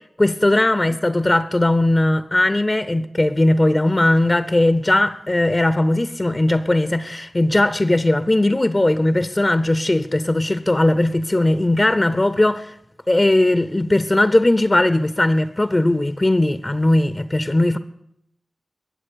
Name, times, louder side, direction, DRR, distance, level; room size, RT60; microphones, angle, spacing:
voice 1, 0.2-12.7 13.1-17.8, left 1 dB, 25° left, 0.6 m, -18 dB
21.0 x 7.4 x 8.4 m
wide cardioid pair, 95°, 0 cm